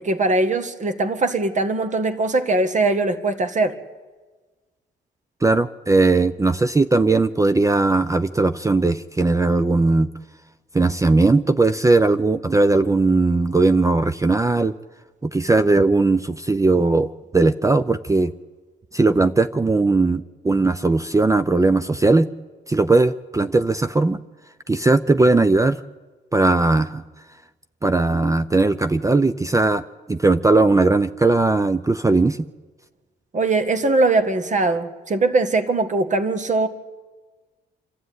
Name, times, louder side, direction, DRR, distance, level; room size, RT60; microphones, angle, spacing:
voice 1, 0.0-3.8 33.3-36.7, right 2 dB, 40° right, 10 dB, 1.9 m, -21 dB
voice 2, 5.4-10.1 10.7-14.7 15.2-18.3 18.9-22.3 22.7-24.2 24.7-25.8 26.3-27.0 27.8-29.8 30.1-32.5, right 3 dB, 15° right, 12 dB, 0.6 m, -18 dB
26.5 x 12.5 x 9.5 m, 1.3 s
cardioid pair, 90°, 20 cm